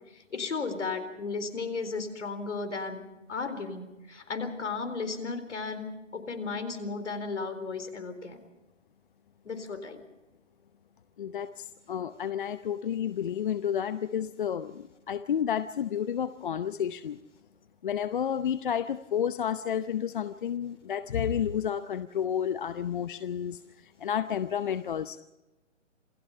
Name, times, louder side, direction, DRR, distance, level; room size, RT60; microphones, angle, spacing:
voice 1, 0.3-8.4 9.4-10.0, left 4 dB, 70° left, 9 dB, 4.1 m, -35 dB
voice 2, 11.2-17.2 17.8-25.2, left 9 dB, 45° left, 13 dB, 0.8 m, -31 dB
27.5 x 17.5 x 5.6 m, 1.0 s
figure-of-eight pair, 145°, 37 cm